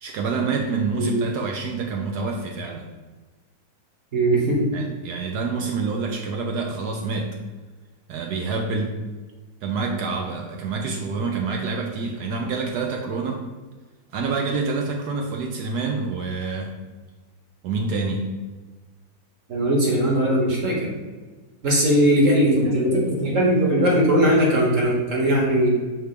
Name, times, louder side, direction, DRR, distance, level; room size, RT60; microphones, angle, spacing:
voice 1, 0.0-2.9 4.7-7.4 8.1-8.9 9.6-13.4 14.1-16.7 17.6-18.3, right 4 dB, 70° right, 2 dB, 1.1 m, -27 dB
voice 2, 4.1-4.7 19.5-20.9 21.6-25.7, right 1 dB, 50° right, -2 dB, 1.6 m, -19 dB
5.7 x 3.3 x 5.0 m, 1.3 s
omnidirectional pair, 1.8 m